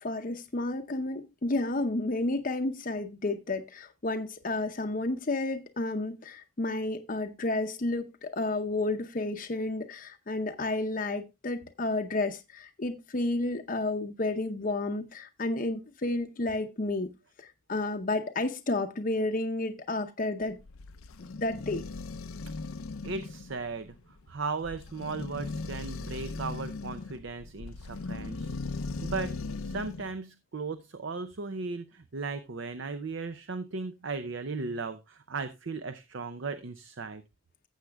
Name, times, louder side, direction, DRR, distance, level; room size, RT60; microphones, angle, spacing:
voice 1, 0.0-20.6 21.4-21.8, left 2 dB, 40° left, 0.7 m, -31 dB
sound 1, 20.4-30.1, left 3 dB, 85° left, 0.6 m, -38 dB
voice 2, 23.0-24.0 24.3-29.3 29.6-37.2, right 4 dB, 60° right, 0.6 m, -36 dB
14.5 x 7.9 x 2.3 m
head